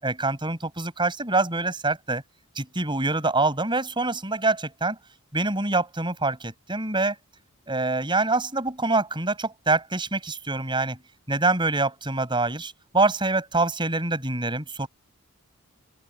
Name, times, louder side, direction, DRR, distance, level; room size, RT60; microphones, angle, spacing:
voice 1, 0.0-2.2 2.6-5.0 5.3-7.2 7.7-11.0 11.3-14.9, right 3 dB, 20° right, 7.3 m, -25 dB
open air
head